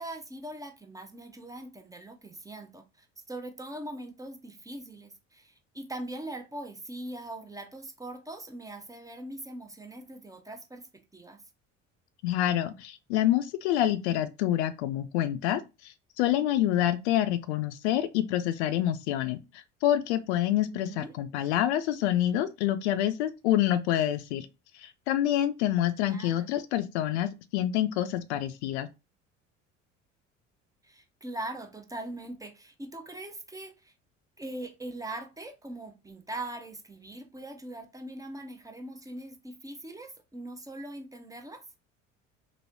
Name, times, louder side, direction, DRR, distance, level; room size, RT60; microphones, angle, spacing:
voice 1, 0.0-10.9 11.1-11.4 20.7-21.1 26.0-26.5 30.8-33.9 34.4-41.6, right 1 dB, 10° right, 0.5 m, -41 dB
voice 2, 12.2-24.5 24.8-28.9, left 12 dB, 65° left, 0.5 m, -27 dB
3.0 x 2.6 x 2.6 m
figure-of-eight pair, 60°, 38 cm